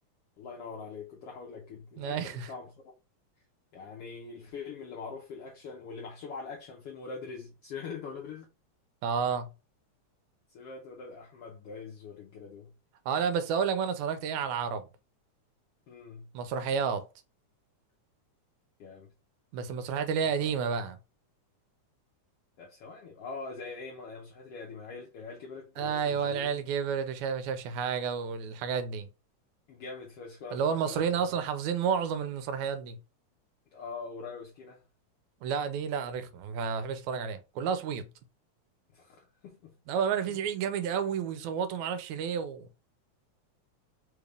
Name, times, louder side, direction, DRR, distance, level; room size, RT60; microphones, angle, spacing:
voice 1, 0.4-2.9 3.7-8.5 10.5-12.7 15.9-16.3 18.8-19.1 20.2-20.5 22.6-26.6 29.7-31.4 33.7-34.8 38.9-39.7 40.3-40.4, left 4 dB, 80° left, 1.3 m, -43 dB
voice 2, 2.0-2.5 9.0-9.5 13.1-14.8 16.3-17.0 19.5-21.0 25.8-29.1 30.5-33.0 35.4-38.1 39.9-42.7, right 6 dB, 75° right, 1.9 m, -30 dB
4.7 x 3.4 x 2.4 m
omnidirectional pair, 3.5 m